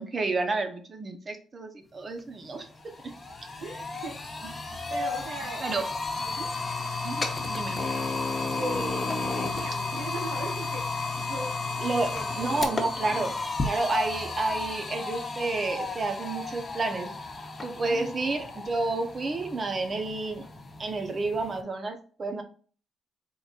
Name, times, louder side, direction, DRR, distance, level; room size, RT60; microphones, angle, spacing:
voice 1, 0.0-2.7 3.0-3.1 4.4-4.5 5.6-6.2 7.0-7.8 11.8-13.4 13.6-17.1 17.6-20.5 20.8-22.4, right 3 dB, 35° right, 6 dB, 0.8 m, -30 dB
sound 1, 2.2-2.3 2.6-21.6, left 3 dB, 25° left, 0.8 m, -33 dB
voice 2, 3.6-4.2 4.9-5.6 6.2-6.5 8.2-13.2 17.7-18.1, right 2 dB, 75° right, -1 dB, 1.0 m, -39 dB
3.8 x 3.8 x 2.5 m, 0.41 s
cardioid pair, 90°, 0 cm